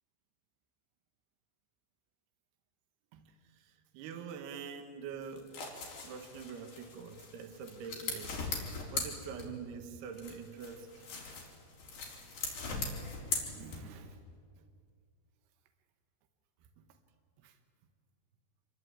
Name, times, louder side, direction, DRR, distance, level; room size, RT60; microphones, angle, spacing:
voice 1, 3.1-5.5 6.0-8.4 8.9-11.0 12.0-12.1 12.5-14.2 14.6-14.7 16.8-16.9 17.4-17.6, right 6 dB, 80° right, 6 dB, 3.4 m, -46 dB
sound 1, 5.2-9.8 10.1-14.1, left 4 dB, 60° left, 6.0 m, -40 dB
27.0 x 24.0 x 8.9 m, 2.1 s
omnidirectional pair, 4.6 m